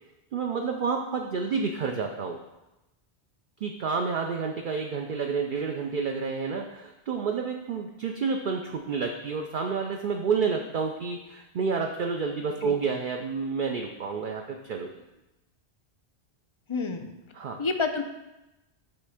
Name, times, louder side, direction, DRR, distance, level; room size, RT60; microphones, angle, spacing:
voice 1, 0.3-2.4 3.6-15.0 17.3-17.6, right 5 dB, 55° right, 3 dB, 0.7 m, -29 dB
voice 2, 16.7-17.1 17.6-18.0, left 4 dB, 35° left, 7 dB, 0.5 m, -28 dB
8.8 x 3.3 x 6.4 m, 0.97 s
omnidirectional pair, 1.1 m